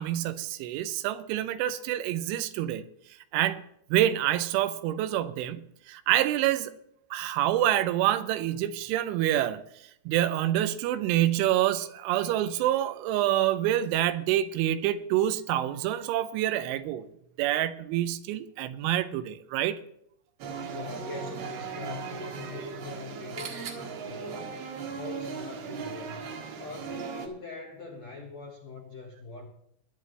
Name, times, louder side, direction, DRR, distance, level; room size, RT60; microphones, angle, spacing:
voice 1, 0.0-2.8 3.3-3.6 3.9-6.7 7.1-9.6 10.1-17.1 17.4-19.8, right 13 dB, 85° right, 11 dB, 3.0 m, -27 dB
sound 1, 20.4-27.3, right 6 dB, 65° right, 3.2 m, -38 dB
voice 2, 20.7-26.2 26.6-29.5, left 3 dB, 75° left, 0 dB, 1.5 m, -42 dB
20.5 x 9.4 x 3.2 m, 0.73 s
omnidirectional pair, 5.6 m